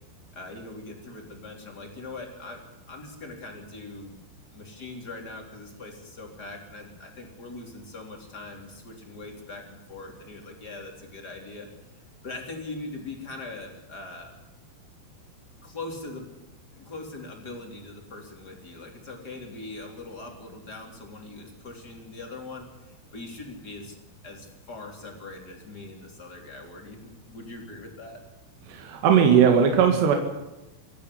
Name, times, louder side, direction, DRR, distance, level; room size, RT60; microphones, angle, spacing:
voice 1, 0.3-4.2 4.5-11.7 12.0-14.4 15.6-16.3 16.7-24.0 24.2-28.2, left 2 dB, 25° left, 3 dB, 3.2 m, -41 dB
voice 2, 28.7-30.2, right 7 dB, 60° right, 3 dB, 3.8 m, -18 dB
25.0 x 10.5 x 10.0 m, 1.0 s
omnidirectional pair, 5.9 m